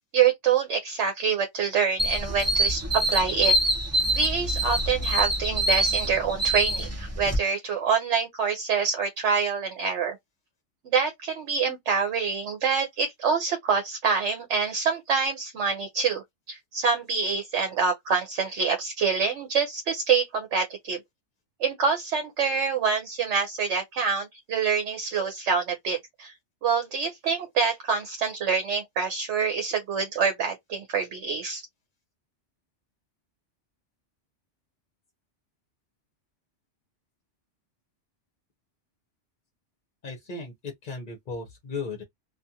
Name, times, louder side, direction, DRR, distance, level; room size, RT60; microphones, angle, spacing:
voice 1, 0.1-2.8 3.1-3.6 4.1-10.2 10.8-21.0 21.6-26.3 26.6-31.6, right 5 dB, 70° right, 1.0 m, -26 dB
sound 1, 2.0-7.4, right 1 dB, 20° right, 0.5 m, -25 dB
voice 2, 40.0-42.0, left 4 dB, 45° left, 0.8 m, -36 dB
2.4 x 2.4 x 2.7 m
omnidirectional pair, 1.2 m